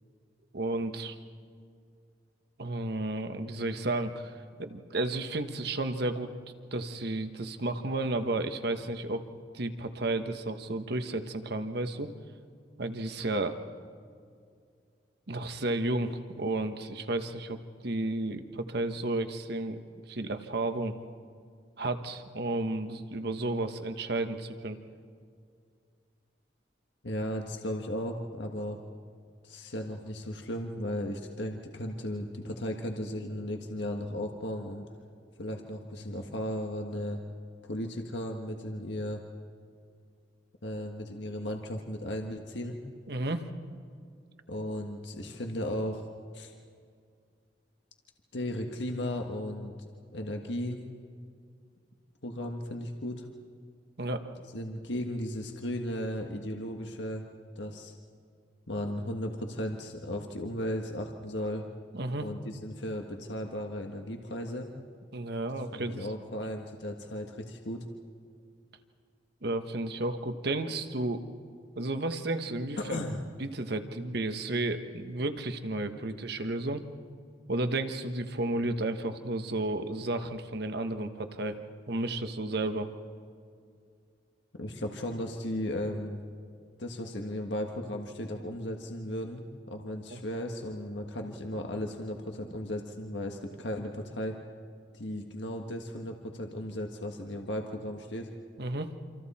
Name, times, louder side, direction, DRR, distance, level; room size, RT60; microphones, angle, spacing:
voice 1, 0.5-1.2 2.6-4.3 4.6-6.3 6.7-9.2 9.5-12.1 12.8-13.5 15.3-19.8 20.1-20.9 21.8-24.8 43.1-43.4 54.0-54.4 61.9-62.3 65.1-66.1 69.4-71.2 71.8-72.8 73.4-76.8 77.5-81.6 81.9-82.9 90.1-90.2 98.6-98.9, right 2 dB, 65° right, 8 dB, 1.3 m, -32 dB
voice 2, 27.0-28.8 29.4-34.9 35.4-37.2 37.6-39.2 40.6-42.8 44.5-46.1 46.3-46.5 48.3-50.8 52.2-53.3 54.5-57.2 57.5-57.9 58.7-61.6 62.2-64.7 65.7-67.8 72.8-73.2 84.5-86.2 86.8-94.4 94.9-98.3, left 1 dB, 80° left, 3 dB, 1.6 m, -35 dB
28.0 x 26.5 x 4.3 m, 2.2 s
head